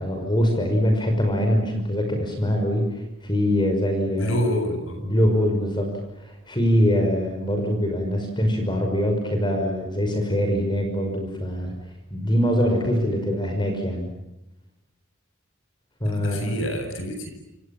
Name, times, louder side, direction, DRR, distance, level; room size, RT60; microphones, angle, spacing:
voice 1, 0.0-4.4 5.0-5.9 6.2-11.7 12.1-14.1 16.0-16.4, equal, 20° left, 4 dB, 5.6 m, -23 dB
voice 2, 4.1-5.0 16.0-17.3, equal, 65° left, 7 dB, 7.8 m, -27 dB
29.0 x 28.0 x 7.3 m, 0.91 s
head